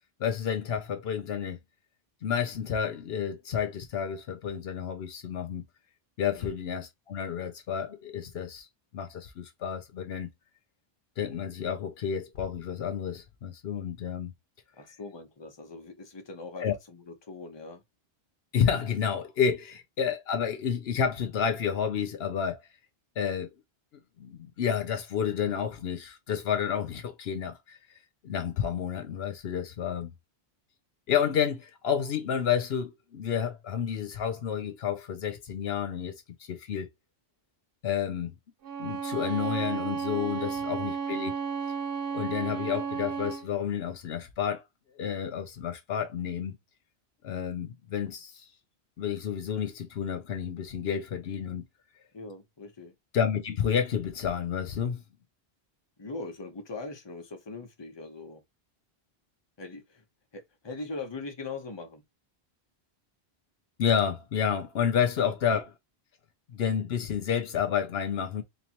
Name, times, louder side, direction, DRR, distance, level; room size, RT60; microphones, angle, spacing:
voice 1, 0.2-1.6 2.2-5.6 6.2-8.7 8.9-10.3 11.2-14.3 16.6-16.8 18.5-22.6 23.2-23.5 24.2-27.8 28.2-30.1 31.1-36.2 36.5-36.9 37.8-38.3 38.8-41.3 42.1-44.6 45.0-46.6 47.2-48.5 49.0-51.6 53.1-55.0 63.8-65.6 66.5-68.4, left 8 dB, 70° left, 0.9 m, -30 dB
voice 2, 14.8-17.8 52.1-52.9 56.0-58.4 59.6-60.0 60.3-62.0 65.2-65.3, left 3 dB, 25° left, 0.8 m, -41 dB
Bowed string instrument, 38.6-43.5, right 6 dB, 60° right, 0.9 m, -33 dB
4.1 x 2.9 x 2.9 m
omnidirectional pair, 1.1 m